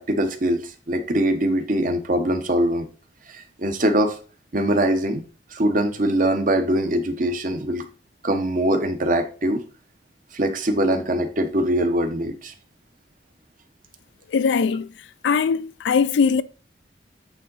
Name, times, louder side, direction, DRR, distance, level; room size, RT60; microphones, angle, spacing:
voice 1, 0.0-2.9 3.3-4.2 4.5-5.2 5.5-7.8 8.2-9.6 10.3-12.5, right 1 dB, 45° right, 0.9 m, -22 dB
voice 2, 14.3-14.9 15.2-16.4, left 5 dB, 75° left, 0.4 m, -20 dB
8.4 x 3.8 x 3.9 m
head